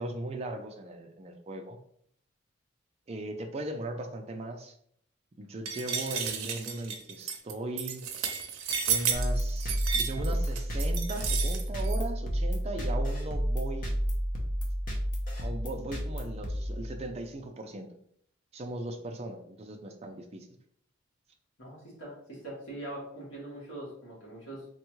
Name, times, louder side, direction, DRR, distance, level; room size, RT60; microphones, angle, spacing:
voice 1, 0.0-1.8 3.1-4.7 5.4-8.0 8.9-13.9 15.4-17.9 18.5-20.5, right 1 dB, 30° right, 4 dB, 0.3 m, -38 dB
sound 1, 5.7-12.0, right 7 dB, 90° right, 0.5 m, -32 dB
sound 2, 9.1-17.3, equal, 40° left, 0.6 m, -31 dB
voice 2, 21.6-24.7, right 1 dB, 70° left, -6 dB, 1.4 m, -42 dB
3.4 x 2.2 x 3.0 m, 0.68 s
head